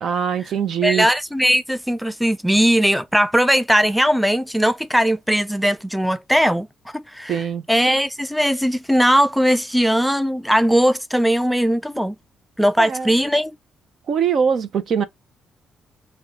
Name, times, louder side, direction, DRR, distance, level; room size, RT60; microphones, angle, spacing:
voice 1, 0.0-1.1 7.3-7.6 12.8-13.1 14.1-15.0, right 7 dB, 60° right, 0.7 m, -22 dB
voice 2, 0.8-6.7 6.9-7.4 7.7-12.1 12.6-13.5, equal, ahead, 0.3 m, -19 dB
5.7 x 2.4 x 3.6 m
cardioid pair, 90°, 0 cm